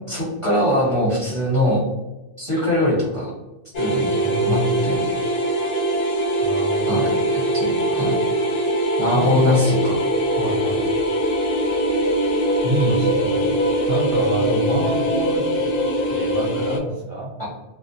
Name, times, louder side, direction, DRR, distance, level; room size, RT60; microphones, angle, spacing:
voice 1, 0.1-1.8 2.4-3.3 3.8-4.1 4.4-5.0 6.9-8.2 9.0-10.0 17.4-17.5, left 1 dB, 30° left, -7 dB, 0.7 m, -22 dB
sound 1, 3.7-16.8, right 1 dB, 65° left, 0.4 m, -22 dB
voice 2, 4.1-4.8 6.4-7.0 9.1-9.7 10.4-10.8 12.6-13.5 13.9-15.7 16.1-17.3, right 1 dB, 60° right, -5 dB, 0.6 m, -26 dB
2.4 x 2.0 x 2.5 m, 1.1 s
omnidirectional pair, 1.2 m